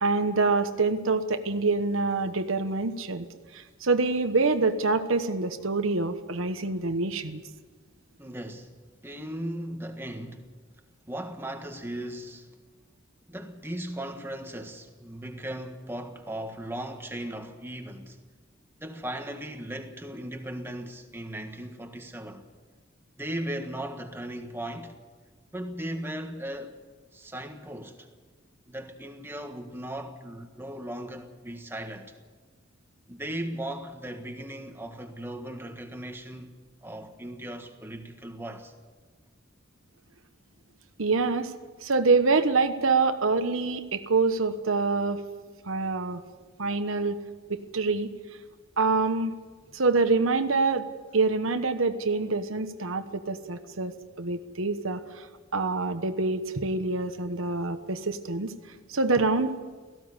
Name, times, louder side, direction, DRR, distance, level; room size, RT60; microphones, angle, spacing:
voice 1, 0.0-3.2 3.5-7.4 41.0-41.5 41.8-45.2 45.7-46.2 46.6-47.2 47.5-48.1 48.8-49.3 49.7-50.9 51.1-55.3 55.5-58.5 58.9-59.5, right 3 dB, 85° right, 1.2 m, -26 dB
voice 2, 8.2-8.7 9.0-10.5 11.1-12.5 13.3-18.2 18.8-22.5 23.2-24.9 25.5-26.8 27.1-28.1 28.7-32.1 33.1-36.5 36.8-38.7, right 1 dB, 10° right, 1.5 m, -37 dB
17.5 x 15.5 x 9.8 m
head